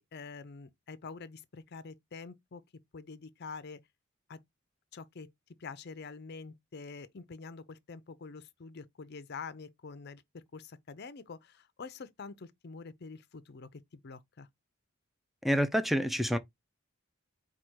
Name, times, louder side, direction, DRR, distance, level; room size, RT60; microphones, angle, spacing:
voice 1, 0.0-2.6 2.9-3.8 4.3-4.4 4.9-5.3 5.6-14.5, left 4 dB, 55° left, 0.6 m, -46 dB
voice 2, 15.4-16.4, equal, ahead, 0.4 m, -27 dB
4.8 x 2.3 x 4.4 m
head